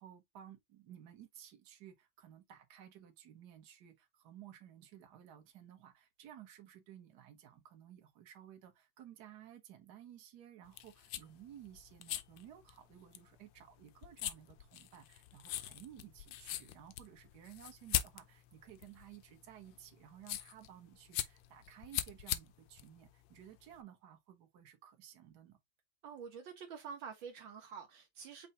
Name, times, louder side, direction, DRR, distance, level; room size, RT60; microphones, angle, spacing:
voice 1, 0.0-25.6, right 10 dB, 60° right, 1.5 m, -56 dB
sound 1, 10.6-23.8, left 13 dB, 75° left, 1.2 m, -42 dB
voice 2, 26.0-28.5, right 6 dB, 75° right, 1.6 m, -47 dB
5.4 x 2.3 x 4.1 m
omnidirectional pair, 2.2 m